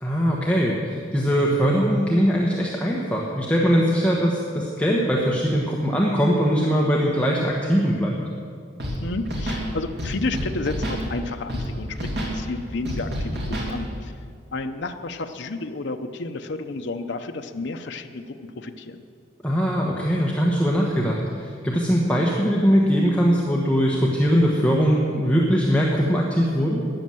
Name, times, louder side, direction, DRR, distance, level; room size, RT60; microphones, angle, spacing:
voice 1, 0.0-8.1 19.4-26.8, equal, 5° left, -3 dB, 1.1 m, -21 dB
Scratching (performance technique), 8.8-9.0 9.2-9.6 10.0-11.0 11.5-11.7 11.9-12.3 12.9-13.7, equal, 60° right, 3.0 m, -28 dB
voice 2, 9.0-14.1 14.5-19.0, left 3 dB, 65° left, 6 dB, 0.7 m, -31 dB
13.0 x 9.9 x 7.7 m, 2.3 s
head